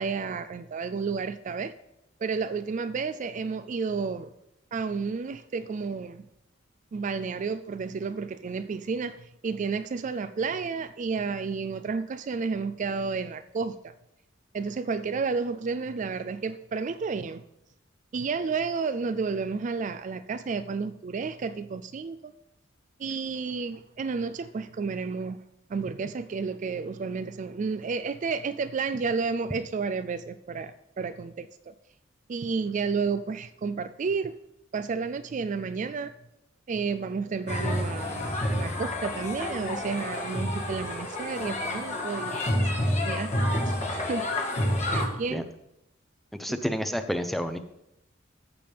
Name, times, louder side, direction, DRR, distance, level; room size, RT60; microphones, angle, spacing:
voice 1, 0.0-1.7 2.2-4.3 4.7-6.2 6.9-13.9 14.5-17.4 18.1-22.3 23.0-25.4 25.7-31.7 32.3-34.3 34.7-36.1 36.7-42.4 43.1-44.3 44.9-45.5 46.5-46.6, right 5 dB, 40° right, 12 dB, 0.3 m, -31 dB
sound 1, 37.5-45.1, left 1 dB, 35° left, 1.7 m, -29 dB
voice 2, 46.3-47.6, equal, ahead, 9 dB, 0.6 m, -29 dB
14.5 x 6.9 x 3.4 m, 0.85 s
head